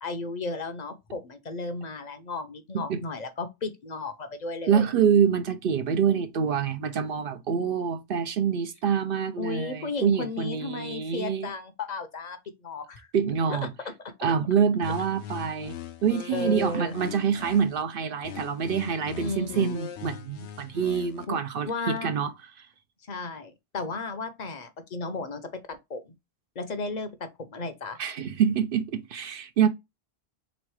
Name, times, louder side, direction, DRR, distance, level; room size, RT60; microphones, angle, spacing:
voice 1, 0.0-4.9 9.4-12.4 12.6-13.1 13.5-13.6 16.3-17.0 19.2-19.7 21.3-21.4 21.7-22.2 23.1-26.1 26.6-28.0, left 3 dB, 45° left, 0.7 m, -34 dB
voice 2, 4.7-11.5 13.1-13.7 14.2-22.3 22.6-22.7 28.0-29.7, right 7 dB, 60° right, 0.7 m, -26 dB
sound 1, 14.8-17.8 18.2-21.2, left 8 dB, 80° left, 0.9 m, -40 dB
3.5 x 3.1 x 4.6 m
omnidirectional pair, 1.1 m